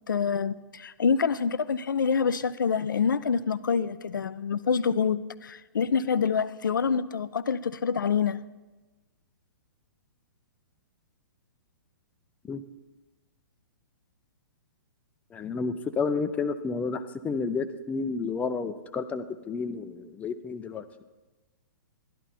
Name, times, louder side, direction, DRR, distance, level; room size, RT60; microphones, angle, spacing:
voice 1, 0.1-8.4, left 6 dB, 75° left, 16 dB, 0.5 m, -26 dB
voice 2, 15.3-20.8, left 4 dB, 15° left, 10 dB, 0.5 m, -31 dB
12.5 x 11.0 x 4.3 m, 1.2 s
figure-of-eight pair, 115°, 11 cm